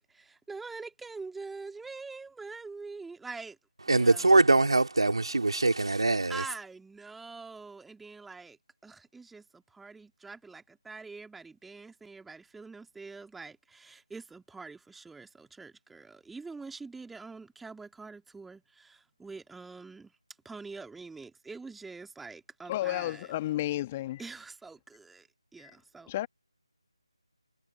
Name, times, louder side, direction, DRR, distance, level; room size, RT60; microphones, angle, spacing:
voice 1, 0.0-3.6 3.9-4.3 6.3-20.1 20.4-23.3 24.2-25.3 25.5-26.1, right 4 dB, ahead, 2.5 m, -45 dB
voice 2, 3.9-6.4, right 2 dB, 60° right, 3.6 m, -23 dB
voice 3, 22.7-24.2 25.6-25.8 26.1-26.3, left 15 dB, 15° left, 1.7 m, -32 dB
figure-of-eight pair, 155°, 3 cm